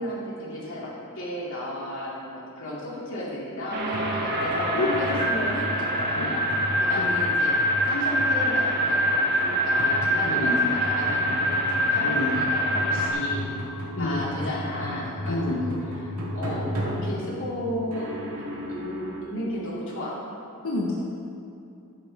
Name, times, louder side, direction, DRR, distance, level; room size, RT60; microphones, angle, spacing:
voice 1, 0.0-7.6 7.9-10.5 10.8-13.4 14.0-15.7 16.0-18.1 18.4-20.2, left 1 dB, 60° left, -6 dB, 2.7 m, -34 dB
sound 1, 3.7-13.1, equal, 45° right, 1.6 m, -24 dB
sound 2, 3.8-19.2, equal, 85° right, 2.2 m, -35 dB
voice 2, 4.7-5.2 6.2-6.4 7.0-7.1 10.2-10.6 12.0-12.3 14.0-14.2 15.3-15.6 20.6-20.9, left 2 dB, 90° left, -4 dB, 1.1 m, -28 dB
14.5 x 7.6 x 3.5 m, 2.5 s
head